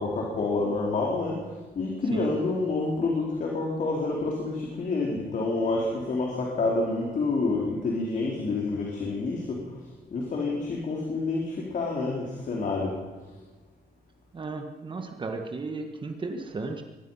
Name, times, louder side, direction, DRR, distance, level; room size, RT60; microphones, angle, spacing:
voice 1, 0.0-9.8 10.1-13.0, left 3 dB, 50° left, -1 dB, 4.4 m, -28 dB
voice 2, 14.3-16.8, right 3 dB, 30° right, 4 dB, 1.7 m, -34 dB
24.0 x 20.0 x 5.8 m, 1.3 s
wide cardioid pair, 170°, 16 cm